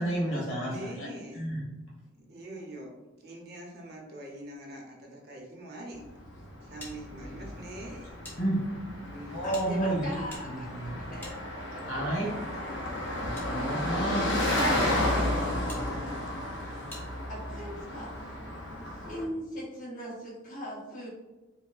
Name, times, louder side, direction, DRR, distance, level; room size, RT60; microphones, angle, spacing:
voice 1, 0.0-1.1 1.3-1.6 8.4-8.6 9.2-10.1 10.4-10.9 11.8-12.3 13.2-14.3, right 1 dB, 80° left, -3 dB, 1.2 m, -31 dB
voice 2, 0.6-1.5 2.1-2.9 3.2-6.1 6.6-8.2 9.0-9.4 12.1-12.5, right 1 dB, 50° right, -1 dB, 0.7 m, -43 dB
Car passing by, 6.0-19.2, left 1 dB, 60° left, 0.7 m, -33 dB
sound 1, 6.8-8.4 8.7-8.8 9.5-11.9 12.7-13.5 14.0-14.1 14.5-14.7 15.7-15.8 16.9-17.1, left 1 dB, 10° left, 0.6 m, -48 dB
voice 3, 9.4-12.0 15.9-16.0 17.3-18.4 18.9-21.1, equal, 40° left, -6 dB, 1.2 m, -41 dB
4.7 x 2.1 x 2.5 m, 1.1 s
head